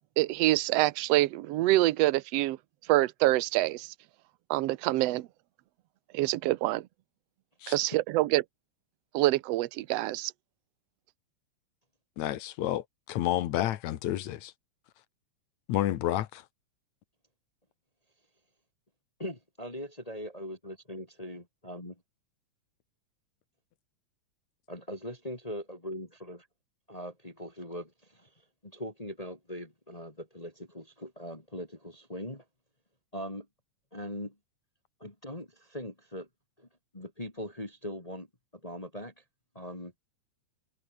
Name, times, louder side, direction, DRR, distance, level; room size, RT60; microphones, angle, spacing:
voice 1, 0.2-2.6 2.9-3.9 4.5-5.3 6.1-6.9 7.7-8.4 9.1-10.3, right 17 dB, 70° right, 1.7 m, -26 dB
voice 2, 12.2-14.5 15.7-16.4, left 13 dB, 70° left, 2.3 m, -30 dB
voice 3, 19.2-22.0 24.7-26.5 26.9-28.3 28.6-32.4 33.1-33.5 33.9-34.3 35.0-36.3 36.6-36.7 36.9-38.3 38.6-39.1 39.5-39.9, equal, 15° left, 1.9 m, -41 dB
omnidirectional pair, 3.4 m